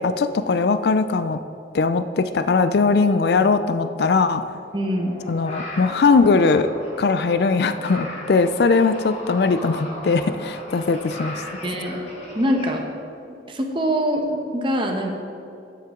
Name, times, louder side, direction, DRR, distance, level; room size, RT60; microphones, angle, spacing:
voice 1, 0.0-1.4 1.7-4.4 5.3-6.7 7.0-11.4, left 4 dB, 60° left, 11 dB, 0.4 m, -20 dB
sound 1, 4.7-12.7, left 1 dB, 35° left, 2.0 m, -37 dB
voice 2, 4.7-5.1 11.6-12.0 12.3-12.8 13.5-15.1, equal, 25° right, 2 dB, 1.0 m, -23 dB
12.5 x 7.6 x 3.8 m, 2.6 s
head